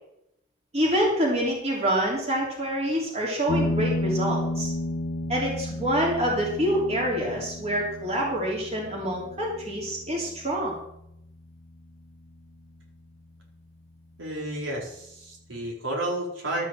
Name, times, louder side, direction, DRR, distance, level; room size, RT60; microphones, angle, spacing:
voice 1, 0.7-4.7 5.3-10.7, equal, 35° right, -3 dB, 3.4 m, -26 dB
sound 1, 3.5-12.5, left 1 dB, 80° left, 1.1 m, -33 dB
voice 2, 14.2-16.7, right 1 dB, 85° right, -2 dB, 4.3 m, -31 dB
12.5 x 6.3 x 7.7 m, 0.79 s
head